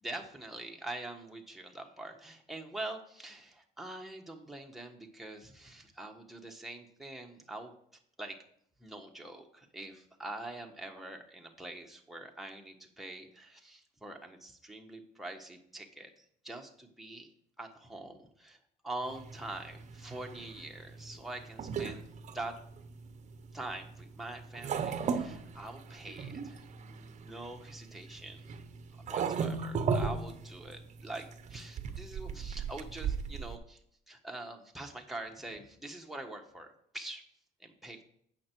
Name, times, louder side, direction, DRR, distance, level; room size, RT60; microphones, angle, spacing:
voice 1, 0.0-7.7 8.2-8.4 8.8-17.3 17.6-22.6 23.5-28.5 28.9-33.8 34.1-37.3 37.6-38.0, right 2 dB, ahead, 1 dB, 1.4 m, -44 dB
sound 1, 19.1-33.6, right 6 dB, 45° right, 0.8 m, -37 dB
8.5 x 6.7 x 4.6 m, 0.67 s
cardioid pair, 110°, 17 cm